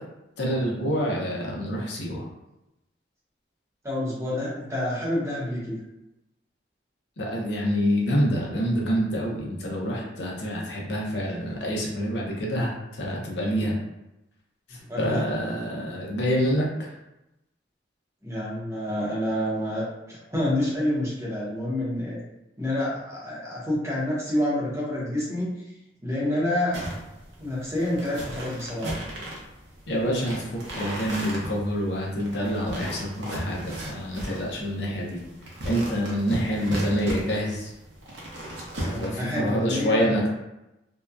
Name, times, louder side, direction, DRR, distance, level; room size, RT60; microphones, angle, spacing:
voice 1, 0.4-2.3 7.2-13.8 14.7-16.9 29.9-35.2 35.6-37.7 38.8-40.3, equal, 70° left, -2 dB, 0.6 m, -27 dB
voice 2, 3.8-5.8 14.9-15.2 18.2-22.2 22.6-25.5 26.0-26.9 27.4-28.9 38.8-40.1, left 1 dB, 15° right, -7 dB, 0.7 m, -28 dB
sound 1, 26.7-39.5, right 1 dB, 70° right, 0.7 m, -36 dB
2.7 x 2.2 x 2.3 m, 0.92 s
head